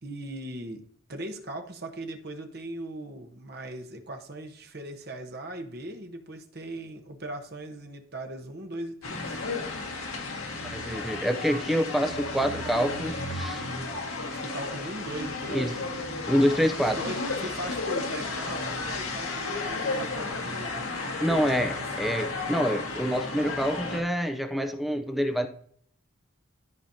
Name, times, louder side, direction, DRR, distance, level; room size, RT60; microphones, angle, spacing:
voice 1, 0.0-9.4 14.3-15.8 16.9-20.8 21.7-21.9, right 1 dB, 50° right, 4 dB, 1.0 m, -39 dB
sound 1, 9.0-24.0, left 3 dB, 85° left, 1.8 m, -33 dB
voice 2, 10.6-13.6 15.5-15.7 16.3-17.0 21.2-25.5, equal, ahead, 7 dB, 0.5 m, -26 dB
13.0 x 5.1 x 2.7 m, 0.63 s
head